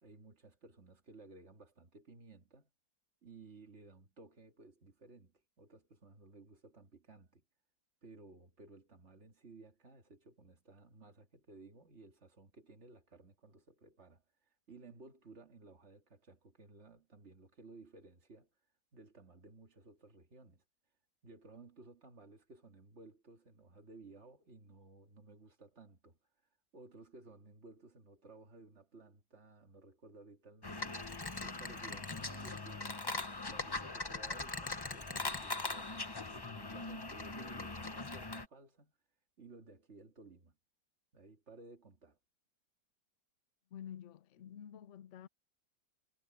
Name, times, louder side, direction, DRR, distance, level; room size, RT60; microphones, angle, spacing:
voice 1, 0.0-2.7 3.2-7.4 8.0-18.5 18.9-20.6 21.2-26.2 26.7-31.0 31.4-33.0 33.5-38.9 39.4-40.6 41.1-42.2, right 3 dB, 35° right, 2.3 m, -57 dB
sound 1, 30.6-38.5, left 3 dB, 40° left, 0.3 m, -41 dB
voice 2, 43.7-45.3, left 9 dB, 55° left, 0.8 m, -49 dB
omnidirectional pair, 2.1 m